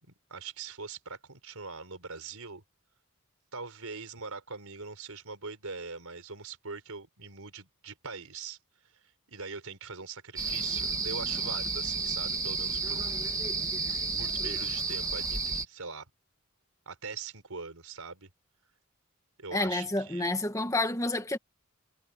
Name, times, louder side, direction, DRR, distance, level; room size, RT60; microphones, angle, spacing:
voice 1, 0.0-2.6 3.5-8.6 9.3-13.2 14.2-16.1 16.9-18.3 19.4-20.3, right 4 dB, 85° right, 4.3 m, -42 dB
sound 1, 10.4-15.6, right 4 dB, 15° right, 2.0 m, -31 dB
voice 2, 19.5-21.4, left 2 dB, 15° left, 1.6 m, -29 dB
head